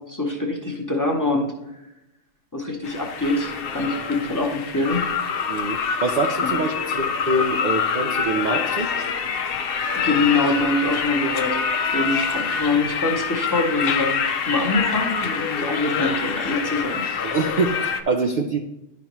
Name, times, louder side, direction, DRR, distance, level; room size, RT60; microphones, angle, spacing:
voice 1, 0.1-1.5 2.5-5.1 6.4-6.5 10.0-17.0, left 2 dB, 20° left, 0 dB, 0.7 m, -24 dB
sound 1, 2.8-18.0, left 6 dB, 60° left, 0.6 m, -25 dB
voice 2, 5.5-9.1 17.2-18.6, right 3 dB, 75° right, 5 dB, 0.4 m, -25 dB
10.5 x 5.1 x 3.0 m, 0.94 s
omnidirectional pair, 1.3 m